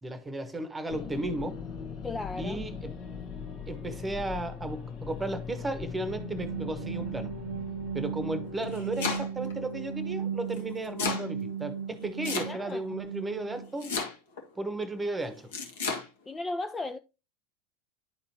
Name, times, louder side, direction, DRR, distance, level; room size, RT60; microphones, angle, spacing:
voice 1, 0.0-1.7 2.4-3.0 3.7-7.3 7.9-13.9 14.5-15.5, right 2 dB, 15° right, 1.2 m, -34 dB
sound 1, 0.9-10.4, left 6 dB, 45° left, 1.3 m, -41 dB
voice 2, 2.0-2.6 12.5-12.8 16.3-17.0, left 2 dB, 15° left, 0.4 m, -35 dB
sound 2, 6.0-13.7, right 7 dB, 75° right, 0.6 m, -36 dB
Domestic sounds home sounds, 8.5-9.5 10.5-11.3 12.2-12.9 13.8-14.4 15.5-16.0, left 4 dB, 65° left, 1.6 m, -32 dB
11.0 x 4.2 x 2.8 m
figure-of-eight pair, 85°, 0 cm